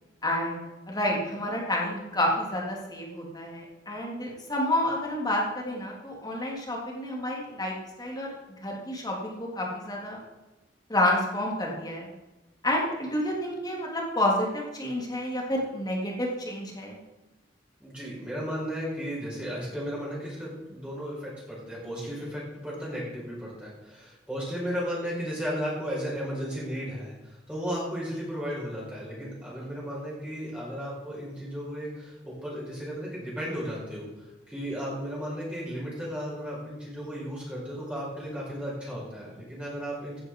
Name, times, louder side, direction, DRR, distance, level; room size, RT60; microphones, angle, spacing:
voice 1, 0.2-0.6 0.9-8.3 8.6-10.2 10.9-12.1 12.6-17.0, left 1 dB, 20° left, -1 dB, 3.3 m, -29 dB
voice 2, 17.8-40.2, equal, 5° right, -6 dB, 5.3 m, -35 dB
16.0 x 10.0 x 4.9 m, 1.1 s
head